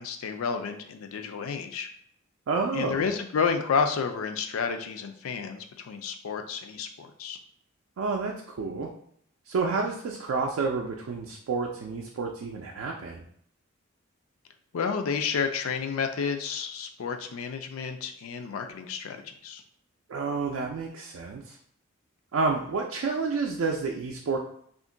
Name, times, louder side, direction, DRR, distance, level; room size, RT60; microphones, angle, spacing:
voice 1, 0.0-1.9 2.7-7.4 14.7-19.6, left 6 dB, 85° left, 6 dB, 0.4 m, -30 dB
voice 2, 2.5-3.1 8.0-8.9 9.5-13.3 20.1-21.6 22.3-24.4, right 4 dB, 75° right, 1 dB, 0.4 m, -29 dB
2.5 x 2.1 x 3.7 m, 0.66 s
head